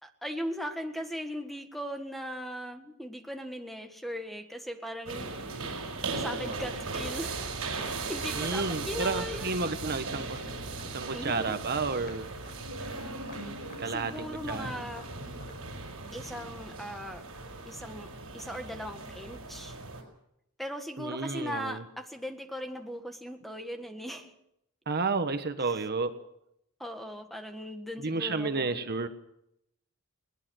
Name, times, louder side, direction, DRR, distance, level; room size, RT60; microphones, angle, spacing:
voice 1, 0.0-5.3 6.0-7.5 8.0-9.5 11.1-11.5 13.8-15.1 16.1-17.2 17.7-18.1 18.3-19.8 20.6-24.3 25.7-25.8 26.8-28.8, equal, ahead, 6 dB, 1.6 m, -38 dB
sound 1, 5.1-20.0, right 3 dB, 70° right, 5.6 m, -38 dB
sound 2, 6.5-7.1 7.4-7.5 7.8-7.9 8.2-8.3 8.6-8.7 9.1-9.2 9.5-9.6 9.9-10.0 10.4-10.5 10.8-11.3 11.6-11.7 12.0-12.2 12.4-12.6 12.9-13.0 13.3-13.8 14.1-14.3 14.5-15.2 15.4-15.6 16.8-16.9, left 2 dB, 45° left, 7.3 m, -50 dB
voice 2, 8.4-10.4 10.8-12.3 13.8-14.8 21.0-21.8 24.9-26.1 28.0-29.1, right 3 dB, 50° right, 9 dB, 1.3 m, -31 dB
21.0 x 19.0 x 6.4 m, 0.79 s
head